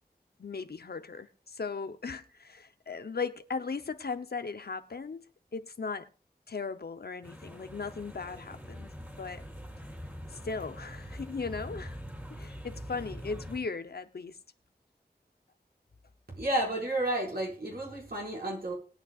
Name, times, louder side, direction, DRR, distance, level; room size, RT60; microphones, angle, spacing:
voice 1, 0.4-5.2 5.5-6.1 6.5-8.9 9.2-9.4 10.3-12.0 12.3-14.4, left 4 dB, 75° left, 0.9 m, -37 dB
sound 1, 7.2-13.6, equal, 10° right, 3.3 m, -44 dB
voice 2, 16.3-18.7, right 1 dB, 70° right, 5.6 m, -31 dB
21.0 x 9.1 x 2.5 m
wide cardioid pair, 50°, 16 cm